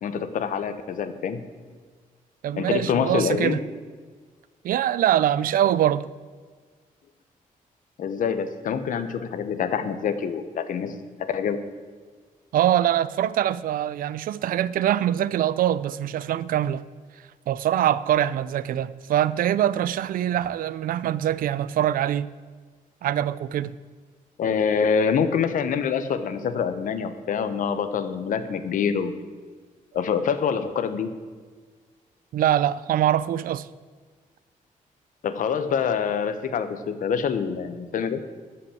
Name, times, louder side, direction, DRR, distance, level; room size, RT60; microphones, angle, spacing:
voice 1, 0.0-1.4 2.6-3.6 8.0-11.6 24.4-29.1 29.9-31.1 35.2-38.2, left 6 dB, 65° left, 1.0 m, -26 dB
voice 2, 2.4-3.6 4.6-6.1 12.5-16.8 17.5-22.3 23.0-23.7 32.3-33.7, right 11 dB, 75° right, 0.5 m, -23 dB
13.5 x 5.6 x 8.4 m
wide cardioid pair, 155°, 15 cm